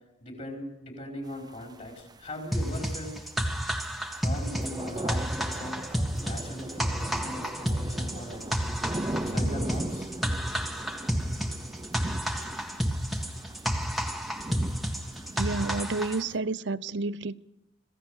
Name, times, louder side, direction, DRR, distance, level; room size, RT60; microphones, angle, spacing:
voice 1, 0.2-3.1 4.2-5.8 6.2-8.5 9.1-10.1, left 1 dB, 35° left, 4.9 m, -39 dB
sound 1, 1.3-16.4, right 1 dB, 20° right, 0.7 m, -39 dB
sound 2, 2.5-16.2, equal, ahead, 1.9 m, -30 dB
voice 2, 15.4-17.4, right 3 dB, 65° right, 0.8 m, -30 dB
26.5 x 16.5 x 6.5 m
head